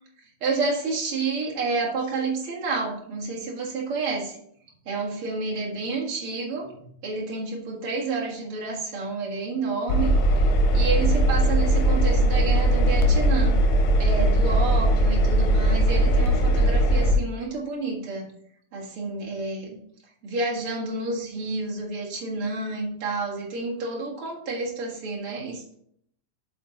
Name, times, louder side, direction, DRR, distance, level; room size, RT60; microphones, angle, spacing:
voice 1, 0.4-4.4 4.9-6.7 7.0-10.1 10.7-13.6 14.0-18.2 18.7-19.8 20.2-25.7, right 3 dB, 45° right, -4 dB, 2.1 m, -29 dB
Engine, 9.9-17.2, right 1 dB, 75° left, 2.6 m, -20 dB
7.7 x 5.6 x 3.9 m, 0.67 s
omnidirectional pair, 4.2 m